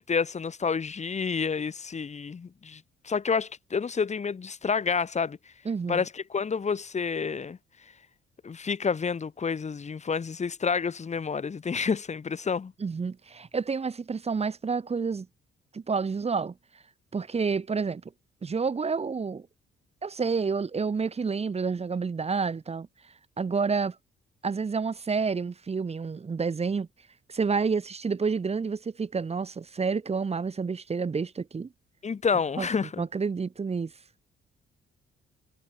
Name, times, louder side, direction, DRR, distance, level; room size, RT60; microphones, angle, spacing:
voice 1, 0.0-5.4 5.9-7.6 8.4-12.7 32.0-33.0, left 5 dB, 35° left, 1.9 m, -29 dB
voice 2, 5.7-6.0 12.8-15.3 15.7-16.5 17.1-18.0 18.4-19.5 20.0-22.9 23.4-24.0 24.4-26.9 27.3-31.7 32.6-32.7 33.0-33.9, right 5 dB, 30° right, 1.6 m, -29 dB
cardioid pair, 90°, 20 cm